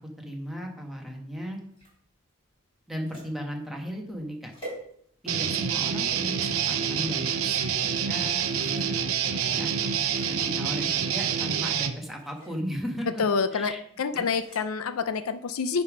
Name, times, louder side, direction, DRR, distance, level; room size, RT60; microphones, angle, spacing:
voice 1, 0.2-1.6 2.9-4.5 5.2-7.6 8.1-9.1 9.4-9.7 10.3-13.2 13.5-13.8 14.1-14.3, equal, ahead, 0 dB, 1.3 m, -36 dB
sound 1, 1.7-5.4 5.9-6.5 7.2-7.5 8.4-9.0 9.4-9.5 9.8-10.4 11.1-11.6 12.1-12.6 14.2-14.6, right 1 dB, 25° left, 3.5 m, -47 dB
Guitar, 5.3-12.0, right 7 dB, 85° right, 0.7 m, -27 dB
voice 2, 13.2-15.8, left 5 dB, 90° left, 12 dB, 0.5 m, -27 dB
9.8 x 3.6 x 5.0 m, 0.67 s
head